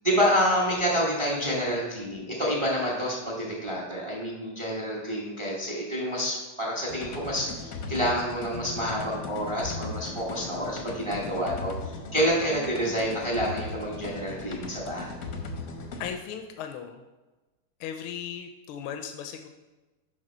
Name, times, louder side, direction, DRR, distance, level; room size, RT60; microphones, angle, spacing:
voice 1, 0.0-11.7 12.1-15.1, equal, 20° right, -3 dB, 0.8 m, -28 dB
sound 1, 6.9-16.1, left 3 dB, 60° left, 0.9 m, -38 dB
voice 2, 16.0-17.0 17.8-19.5, left 8 dB, 80° left, 5 dB, 1.4 m, -37 dB
8.9 x 3.3 x 5.4 m, 1.1 s
omnidirectional pair, 2.4 m